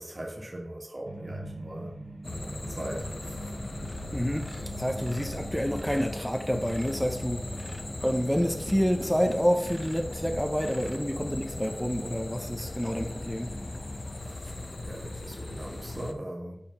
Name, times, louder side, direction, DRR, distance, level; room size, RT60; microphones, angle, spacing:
voice 1, 0.0-2.0 2.7-3.5 14.8-16.6, right 1 dB, 60° right, 0 dB, 1.6 m, -39 dB
sound 1, 1.0-11.2, right 2 dB, 85° right, 1.0 m, -44 dB
sound 2, 2.2-16.1, left 2 dB, 70° left, 0.6 m, -38 dB
sound 3, 3.2-3.5 3.8-4.1 4.3-7.1 7.5-10.2 10.5-11.0 11.7-11.8 12.2-12.3 12.7-12.9, right 1 dB, 40° right, 1.0 m, -48 dB
voice 2, 4.1-13.5, equal, 5° left, 4 dB, 0.7 m, -28 dB
5.6 x 4.5 x 5.4 m, 0.79 s
wide cardioid pair, 45°, 0 cm